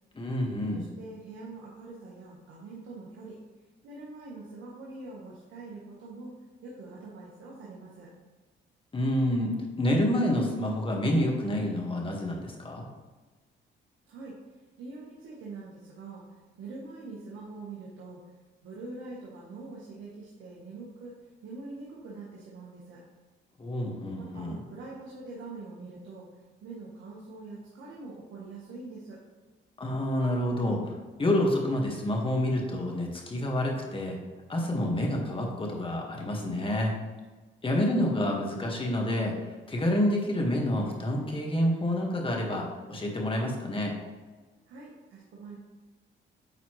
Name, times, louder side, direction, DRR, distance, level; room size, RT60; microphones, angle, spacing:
voice 1, 0.1-0.8 8.9-9.5 9.8-12.8 23.6-24.6 29.8-30.9 31.2-34.2 34.5-36.9 37.6-43.9, left 1 dB, 25° left, 0 dB, 1.6 m, -28 dB
voice 2, 0.7-3.3 3.8-6.3 6.6-8.1 14.1-14.3 14.8-16.2 16.6-18.2 18.6-21.2 21.4-23.0 24.2-26.3 26.6-29.2 44.7-45.6, right 3 dB, 75° right, -5 dB, 1.4 m, -44 dB
9.2 x 4.0 x 3.1 m, 1.3 s
cardioid pair, 90°, 20 cm